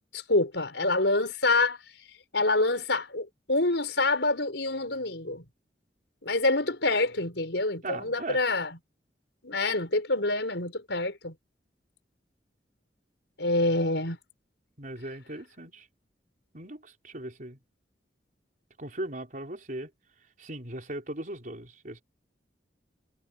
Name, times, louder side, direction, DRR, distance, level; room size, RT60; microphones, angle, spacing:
voice 1, 0.1-1.8 2.3-5.4 6.2-8.8 9.4-11.3 13.4-14.2, left 2 dB, 75° left, 5.2 m, -26 dB
voice 2, 7.8-8.4 14.8-15.9 16.5-17.6 18.8-19.9 20.4-22.0, right 1 dB, 45° right, 4.9 m, -38 dB
head